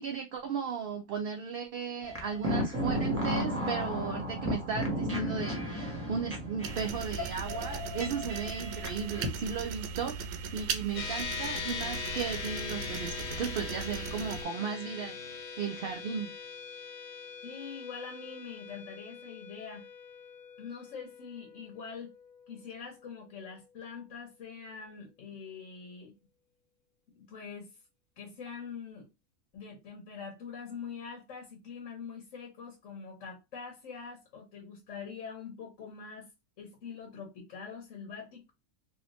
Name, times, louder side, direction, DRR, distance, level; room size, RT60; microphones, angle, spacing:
voice 1, 0.0-16.3, right 6 dB, 65° right, 0.6 m, -36 dB
sound 1, 2.0-9.3, equal, 10° right, 1.0 m, -34 dB
sound 2, 6.6-14.4, right 6 dB, 80° right, 1.0 m, -39 dB
sound 3, 10.9-24.6, left 5 dB, 50° left, 0.6 m, -42 dB
voice 2, 17.4-19.8 20.6-22.1 22.5-26.1 27.2-27.8 28.2-29.1 29.5-36.3 36.6-38.5, left 6 dB, 70° left, 1.3 m, -44 dB
3.1 x 2.7 x 3.0 m
omnidirectional pair, 1.4 m